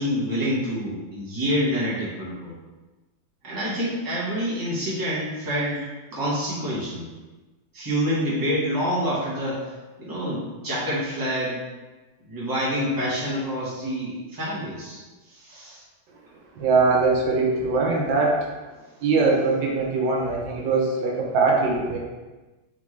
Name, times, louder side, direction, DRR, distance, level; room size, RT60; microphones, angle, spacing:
voice 1, 0.0-2.6 3.4-5.8 6.1-7.1 7.7-9.6 10.0-11.6 12.3-15.0 15.3-15.8, equal, 15° right, -8 dB, 1.1 m, -27 dB
voice 2, 16.6-18.4 19.0-22.0, right 3 dB, 90° right, -1 dB, 1.5 m, -21 dB
3.9 x 3.5 x 3.2 m, 1.2 s
omnidirectional pair, 1.9 m